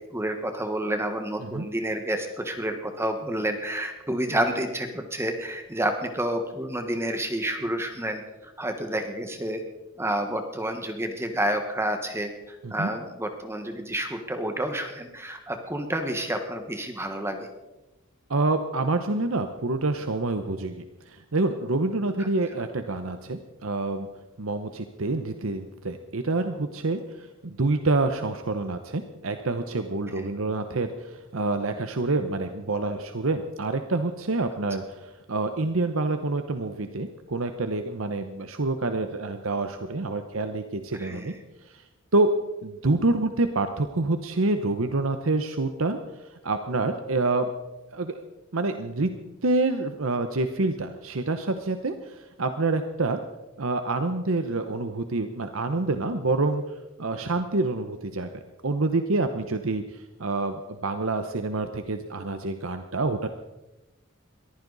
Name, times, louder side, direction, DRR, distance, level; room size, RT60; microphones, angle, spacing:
voice 1, 0.1-9.6 10.0-17.5 30.1-30.2 41.0-41.3, right 1 dB, 10° right, 6 dB, 1.4 m, -29 dB
voice 2, 18.3-24.1 24.4-41.3 41.7-41.8 42.1-42.3 42.6-47.5 47.9-48.2 48.5-49.1 49.4-53.2 53.6-56.6 57.0-58.3 58.6-63.3, right 2 dB, 70° right, 8 dB, 0.9 m, -27 dB
22.0 x 15.0 x 4.1 m, 1.0 s
head